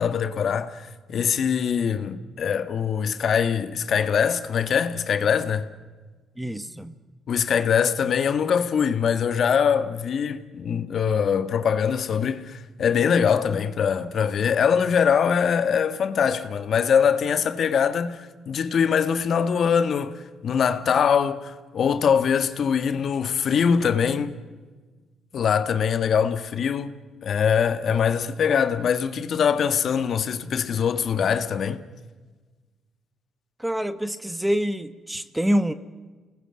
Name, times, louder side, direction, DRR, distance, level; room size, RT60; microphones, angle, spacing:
voice 1, 0.0-5.7 7.3-24.3 25.3-26.9 27.2-31.8, left 7 dB, 60° left, 1.6 m, -23 dB
voice 2, 6.4-7.0 25.3-25.4 33.6-35.7, equal, 5° right, 1.3 m, -26 dB
29.5 x 20.0 x 7.8 m
cardioid pair, 90°, 0 cm